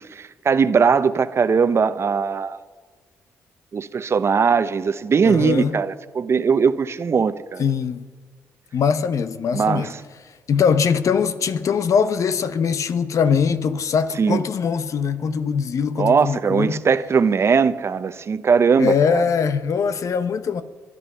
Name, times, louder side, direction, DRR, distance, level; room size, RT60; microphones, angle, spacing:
voice 1, 0.0-2.6 3.7-7.6 9.5-10.0 14.2-14.4 16.0-19.2, right 5 dB, 50° right, 0.8 m, -20 dB
voice 2, 5.2-5.8 7.6-8.0 8.7-9.9 10.5-16.8 18.8-20.6, left 6 dB, 65° left, 0.9 m, -22 dB
22.5 x 11.0 x 5.6 m
cardioid pair, 65°, 6 cm